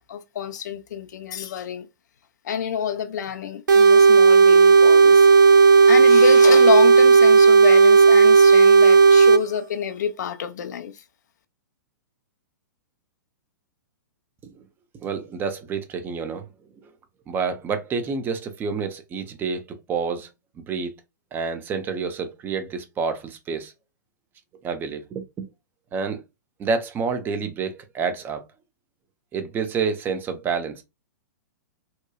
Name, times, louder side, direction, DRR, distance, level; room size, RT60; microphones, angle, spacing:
voice 1, 0.0-1.9 2.4-5.3 5.9-10.9, left 8 dB, 60° left, 0.4 m, -28 dB
sound 1, 3.7-9.4, right 4 dB, 75° right, 0.5 m, -12 dB
voice 2, 15.0-16.5 17.3-19.6 19.9-20.3 20.7-21.0 21.3-23.7 24.6-25.5 25.9-26.2 26.6-28.4 29.3-30.8, right 5 dB, 20° right, 0.5 m, -28 dB
2.9 x 2.2 x 2.2 m
figure-of-eight pair, 115°, 10 cm